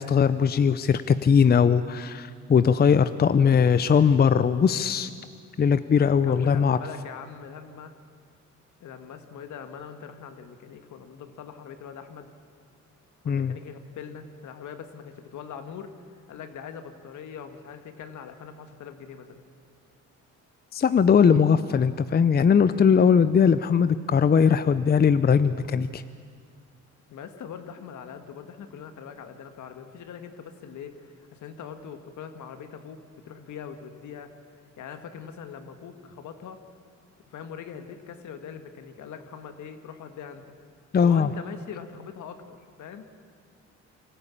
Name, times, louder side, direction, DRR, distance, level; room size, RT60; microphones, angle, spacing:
voice 1, 0.0-5.1 5.6-6.8 13.3-13.5 20.7-26.0 40.9-41.3, left 6 dB, 30° left, 13 dB, 0.6 m, -20 dB
voice 2, 6.2-7.9 8.8-12.3 13.2-19.4 27.1-34.3 34.8-36.6 37.3-40.5 41.0-43.1, left 7 dB, 75° left, 8 dB, 1.8 m, -42 dB
24.5 x 14.0 x 8.6 m, 2.1 s
cardioid pair, 90°, 30 cm